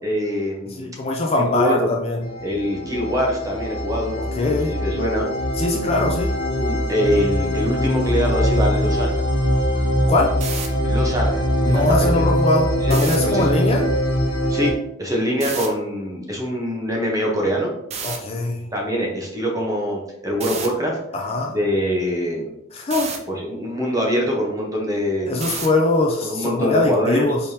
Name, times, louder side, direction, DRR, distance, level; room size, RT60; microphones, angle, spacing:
voice 1, 0.0-0.9 1.5-1.9 2.4-4.2 4.5-5.3 6.6-9.1 10.8-11.3 11.7-12.3 12.8-13.0 13.2-13.5 14.5-14.7 15.0-17.7 18.7-21.0 21.5-22.5 23.3-25.4 26.2-27.3, equal, 15° right, -1 dB, 0.9 m, -23 dB
voice 2, 0.7-2.3 4.2-4.7 5.6-6.3 10.1-10.3 11.6-13.8 18.0-18.7 21.1-21.5 22.7-23.1 25.3-27.4, left 2 dB, 30° left, 1 dB, 0.4 m, -22 dB
sound 1, 2.2-14.7, equal, 80° left, 1.4 m, -22 dB
sound 2, 10.3-10.7 12.8-13.2 15.4-15.7 17.9-18.2 20.4-20.7 22.9-23.2 25.4-25.8, right 5 dB, 30° right, 0.5 m, -29 dB
4.7 x 3.4 x 2.8 m, 0.83 s
head